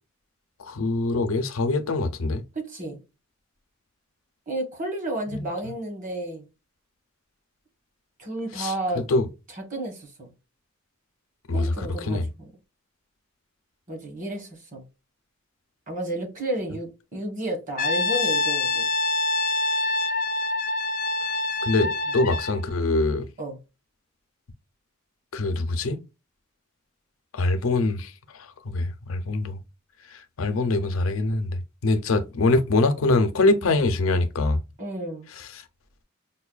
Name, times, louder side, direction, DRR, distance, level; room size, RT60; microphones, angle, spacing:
voice 1, 0.7-2.4 5.3-5.4 8.6-9.3 11.5-11.7 12.1-12.3 21.6-21.9 22.1-23.3 25.3-26.0 27.3-28.1 28.7-29.6 30.4-31.5 31.8-34.6, left 2 dB, 90° left, 0.6 m, -23 dB
voice 2, 2.5-3.0 4.5-6.5 8.2-9.0 9.5-10.3 11.5-12.5 13.9-14.8 15.9-18.8 21.8-22.2 23.4-23.6 34.8-35.3, right 1 dB, 40° right, 1.2 m, -32 dB
Brass instrument, 17.8-22.6, left 3 dB, 40° left, 0.3 m, -25 dB
5.4 x 2.2 x 2.3 m
head